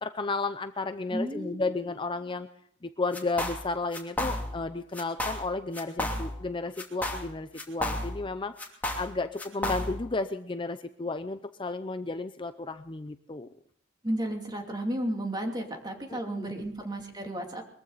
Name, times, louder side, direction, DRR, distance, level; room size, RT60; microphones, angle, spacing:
voice 1, 0.0-2.5 2.8-8.5 9.0-13.5 16.1-16.5, left 3 dB, 25° left, 9 dB, 0.6 m, -33 dB
voice 2, 1.1-1.9 14.0-17.6, right 1 dB, 25° right, 2 dB, 2.8 m, -33 dB
sound 1, 3.1-3.7 3.9-4.7 4.9-5.5 5.7-6.5 6.8-8.3 8.6-10.1, left 1 dB, 10° left, 2.8 m, -32 dB
22.0 x 14.5 x 4.1 m, 0.65 s
head